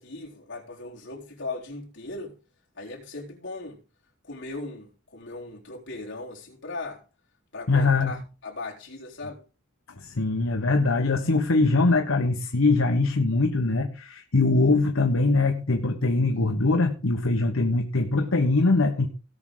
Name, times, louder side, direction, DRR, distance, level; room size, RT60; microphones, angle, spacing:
voice 1, 0.0-2.4 2.8-3.8 4.2-7.0 7.5-9.4, left 3 dB, 60° left, 3.7 m, -38 dB
voice 2, 7.7-8.1 10.0-19.1, left 3 dB, 75° left, 1.1 m, -22 dB
18.0 x 6.3 x 3.8 m
head